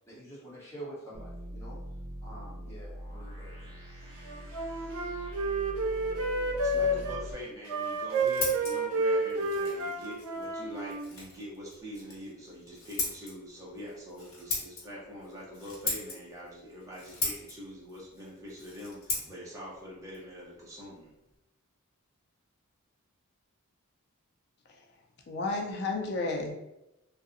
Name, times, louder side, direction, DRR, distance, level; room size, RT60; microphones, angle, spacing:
voice 1, 0.1-1.8 2.2-3.7, right 1 dB, 15° left, -8 dB, 0.8 m, -46 dB
sound 1, 1.1-7.3, equal, 65° right, 0.9 m, -42 dB
Wind instrument woodwind instrument, 4.2-7.2 7.7-11.0, right 2 dB, 80° right, 0.5 m, -30 dB
voice 2, 6.6-21.1, equal, 15° right, -6 dB, 0.5 m, -44 dB
Scissors, 7.8-21.4, left 3 dB, 70° left, 0.9 m, -40 dB
voice 3, 25.3-26.6, left 3 dB, 50° left, 2 dB, 0.4 m, -32 dB
2.6 x 2.0 x 2.4 m, 0.91 s
head